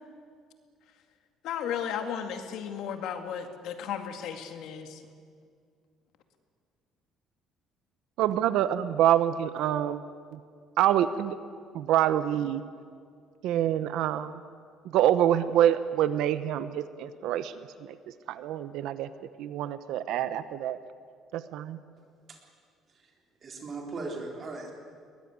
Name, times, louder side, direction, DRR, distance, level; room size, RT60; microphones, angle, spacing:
voice 1, 1.4-5.0, left 8 dB, 60° left, 7 dB, 2.2 m, -34 dB
voice 2, 8.2-10.0 10.3-10.4 10.8-11.4 11.7-12.6 13.4-14.4 14.8-17.5 17.8-18.0 18.3-19.1 19.4-20.8 21.3-21.8, right 11 dB, 70° right, 13 dB, 0.9 m, -26 dB
voice 3, 23.4-24.7, right 3 dB, 30° right, 1 dB, 3.9 m, -37 dB
22.0 x 20.5 x 9.7 m, 2.2 s
cardioid pair, 170°, 0 cm